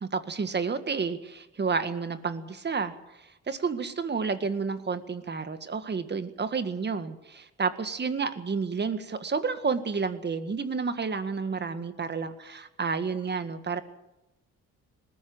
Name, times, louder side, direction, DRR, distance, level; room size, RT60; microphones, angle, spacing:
voice 1, 0.0-2.9 3.5-13.8, right 5 dB, 35° right, 10 dB, 1.8 m, -30 dB
20.0 x 14.0 x 9.5 m, 0.98 s
cardioid pair, 90°, 30 cm